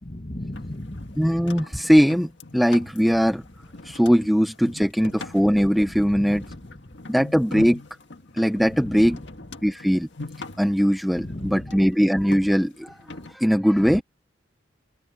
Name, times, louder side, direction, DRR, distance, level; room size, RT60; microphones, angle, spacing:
voice 1, 0.0-1.2 5.9-6.9 8.7-9.2 11.1-11.8 13.8-14.0, left 1 dB, 35° left, 1.7 m, -36 dB
sound 1, 0.5-13.3, left 2 dB, 65° left, 1.8 m, -42 dB
voice 2, 1.2-3.4 3.8-6.4 7.1-7.8 8.3-9.2 9.6-10.1 10.6-13.0 13.3-14.0, equal, ahead, 0.7 m, -20 dB
head